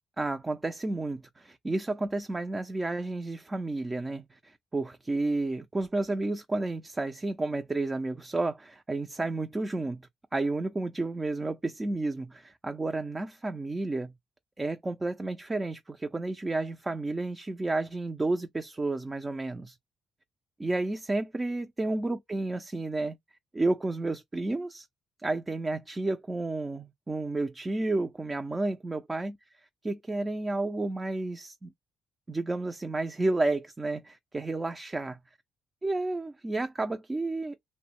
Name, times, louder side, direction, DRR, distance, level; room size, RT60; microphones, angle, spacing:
voice 1, 0.2-10.0 10.3-14.1 14.6-19.8 20.6-23.2 23.5-24.9 25.2-29.4 29.8-31.7 32.3-35.2 35.8-37.6, right 2 dB, 20° right, 0.4 m, -31 dB
2.6 x 2.1 x 2.8 m
cardioid pair, 90°, 0 cm